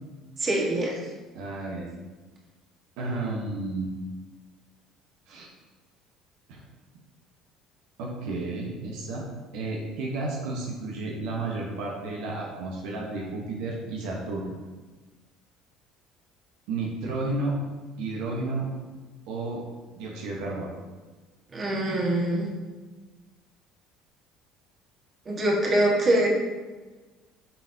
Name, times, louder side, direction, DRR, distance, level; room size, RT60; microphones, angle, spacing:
voice 1, 0.4-1.0 21.5-22.5 25.2-26.3, right 1 dB, 35° right, -2 dB, 1.6 m, -24 dB
voice 2, 1.3-1.9 3.0-3.9 5.3-5.5 6.5-6.6 8.0-9.3 9.5-14.5 16.7-17.6 18.0-18.7 19.3-19.6 20.0-20.7, right 2 dB, 75° right, -2 dB, 1.2 m, -32 dB
8.3 x 4.1 x 2.8 m, 1.3 s
supercardioid pair, 85°, 0 cm